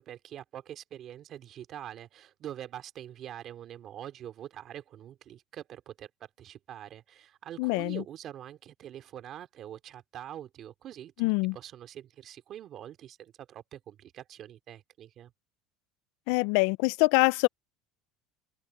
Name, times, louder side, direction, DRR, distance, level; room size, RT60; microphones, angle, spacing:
voice 1, 0.0-15.3, right 11 dB, 40° right, 2.6 m, -44 dB
voice 2, 7.6-8.0 11.2-11.6 16.3-17.5, left 27 dB, 70° left, 0.3 m, -24 dB
open air
cardioid pair, 145°, 0 cm